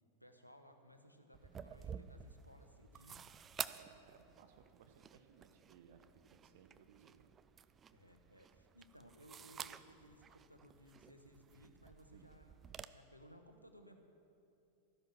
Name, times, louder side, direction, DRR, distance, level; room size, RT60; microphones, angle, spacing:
voice 1, 0.2-3.4 7.9-12.6 12.8-14.0, equal, 90° left, 6 dB, 1.1 m, -61 dB
sound 1, 1.3-12.9, right 7 dB, 25° right, 0.4 m, -51 dB
voice 2, 3.6-7.3 12.1-12.3, right 7 dB, 55° right, 6 dB, 0.9 m, -63 dB
13.5 x 10.5 x 6.0 m, 2.7 s
figure-of-eight pair, 90°, 0 cm